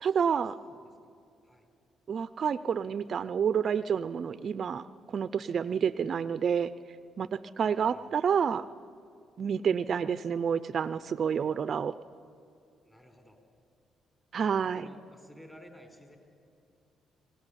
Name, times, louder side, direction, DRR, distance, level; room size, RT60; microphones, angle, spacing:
voice 1, 0.0-0.6 2.1-6.7 7.2-8.6 9.4-11.9 14.3-14.8, right 7 dB, 50° right, 14 dB, 0.5 m, -29 dB
voice 2, 0.6-1.1 1.4-1.7 7.8-8.4 12.8-13.4 14.7-16.2, equal, 10° left, 6 dB, 4.3 m, -54 dB
25.0 x 17.5 x 10.0 m, 2.4 s
cardioid pair, 90°, 0 cm